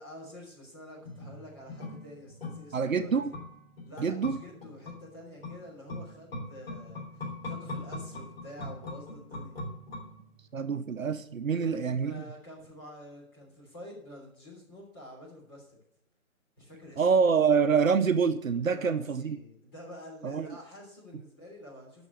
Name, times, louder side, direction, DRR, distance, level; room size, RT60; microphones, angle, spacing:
voice 1, 0.0-3.1 3.8-9.6 11.5-15.8 16.6-17.0 18.6-22.1, equal, 15° left, 3.4 m, -48 dB
sound 1, 1.0-10.6 10.9-11.0, left 2 dB, 45° left, 2.8 m, -41 dB
voice 2, 2.7-3.3 4.0-4.4 10.5-12.2 17.0-19.4 20.2-20.5, right 6 dB, 70° right, 0.9 m, -26 dB
13.5 x 6.1 x 6.7 m
hypercardioid pair, 170°, 42 cm